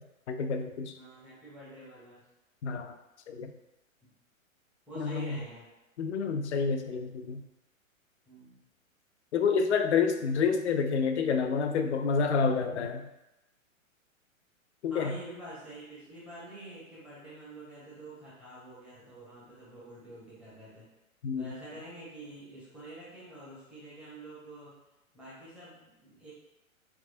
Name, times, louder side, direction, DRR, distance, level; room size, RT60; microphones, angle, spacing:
voice 1, 0.3-0.9 2.6-2.9 3.3-3.5 5.0-5.4 6.0-7.4 9.3-13.0 14.8-15.2 21.2-21.5, left 5 dB, 55° left, 7 dB, 0.5 m, -28 dB
voice 2, 0.9-2.2 4.0-4.1 4.9-5.7 8.3-8.6 14.9-20.9 21.4-24.8 25.1-26.3, right 1 dB, 5° right, -9 dB, 0.8 m, -47 dB
3.5 x 2.9 x 2.6 m, 0.95 s
figure-of-eight pair, 115°, 41 cm